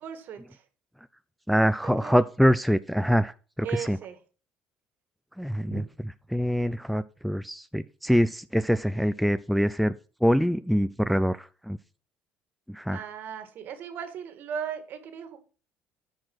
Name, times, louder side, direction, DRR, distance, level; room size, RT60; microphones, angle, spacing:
voice 1, 0.0-0.6 1.8-2.2 3.6-4.2 5.7-5.8 12.9-15.4, right 8 dB, 60° right, 9 dB, 1.8 m, -37 dB
voice 2, 1.5-3.3 3.8-4.0 5.4-5.8 6.3-9.9 10.2-11.4 11.7-11.8 12.7-13.0, equal, ahead, 12 dB, 0.3 m, -24 dB
9.5 x 4.7 x 6.0 m, 0.37 s
cardioid pair, 110°, 4 cm